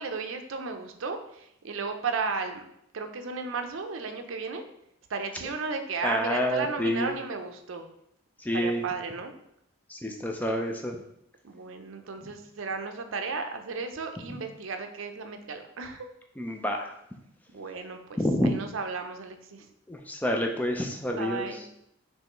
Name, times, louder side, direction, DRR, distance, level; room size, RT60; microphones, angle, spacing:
voice 1, 0.0-2.6 2.9-4.6 5.1-7.9 8.5-9.3 11.4-16.1 17.5-18.2 18.4-19.7 21.1-21.6, right 4 dB, 70° right, 6 dB, 0.5 m, -34 dB
voice 2, 6.0-7.1 8.4-8.8 9.9-11.0 16.4-17.0 18.2-18.5 19.9-21.6, equal, 10° left, 3 dB, 0.4 m, -28 dB
5.4 x 3.2 x 3.0 m, 0.78 s
head